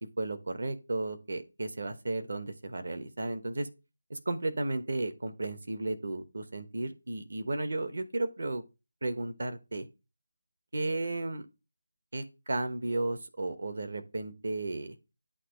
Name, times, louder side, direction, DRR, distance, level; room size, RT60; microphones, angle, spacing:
voice 1, 0.2-3.7 4.1-8.6 9.0-9.9 10.7-11.5 12.1-15.0, right 2 dB, 60° right, 1.0 m, -34 dB
8.5 x 3.0 x 5.0 m
figure-of-eight pair, 175°, 0 cm